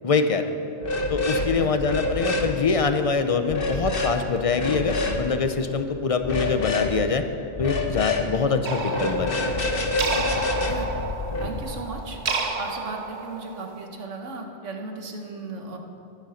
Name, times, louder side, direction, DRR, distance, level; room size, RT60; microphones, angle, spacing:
voice 1, 0.0-0.4 1.1-7.2 7.6-9.5, left 4 dB, 35° left, 8 dB, 0.6 m, -24 dB
sound 1, 0.8-1.5 1.8-2.5 3.5-4.1 4.5-5.2 6.2-6.9 7.6-8.3 8.9-11.6, left 2 dB, 50° left, 1.3 m, -26 dB
sound 2, 8.6-13.9, right 4 dB, 70° right, 1.2 m, -31 dB
voice 2, 11.4-12.2 12.6-15.8, right 3 dB, 90° right, 3 dB, 1.6 m, -36 dB
13.0 x 10.5 x 5.7 m, 2.7 s
omnidirectional pair, 1.2 m